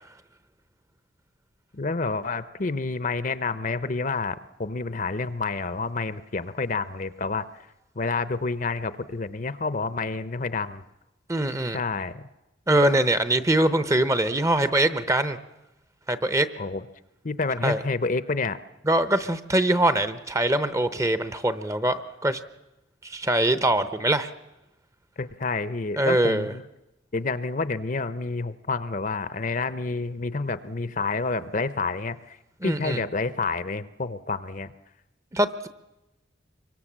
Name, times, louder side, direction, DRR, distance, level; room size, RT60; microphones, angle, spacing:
voice 1, 1.7-7.5 8.0-10.8 11.7-12.3 16.6-16.8 17.2-18.6 25.2-26.6 27.1-32.4 32.6-34.7, left 3 dB, 45° left, 14 dB, 0.8 m, -29 dB
voice 2, 11.3-11.8 12.7-15.4 16.1-16.5 17.6-17.8 18.8-22.4 23.0-24.3 26.0-26.5 32.6-33.0 35.3-35.7, right 1 dB, 15° right, 12 dB, 0.8 m, -23 dB
25.0 x 23.5 x 7.4 m, 0.98 s
head